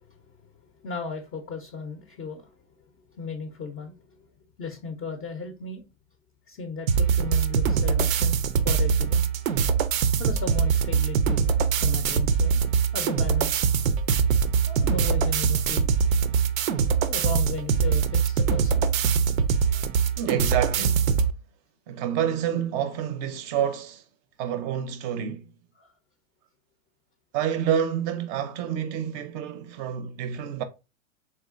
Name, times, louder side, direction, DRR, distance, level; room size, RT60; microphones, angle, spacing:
voice 1, 0.1-0.5 0.8-2.6 3.1-4.2 4.6-5.8 6.5-9.3 10.2-12.6 12.9-13.6 14.7-15.9 17.0-18.8 19.7-19.8 25.8-25.9, left 4 dB, 25° left, 0.4 m, -36 dB
sound 1, 6.9-21.3, right 6 dB, 90° right, 0.5 m, -23 dB
voice 2, 20.2-21.1 21.9-24.0 24.4-25.5 27.3-30.6, right 9 dB, 35° right, 0.5 m, -28 dB
3.5 x 3.2 x 2.4 m
hypercardioid pair, 120°, 40 cm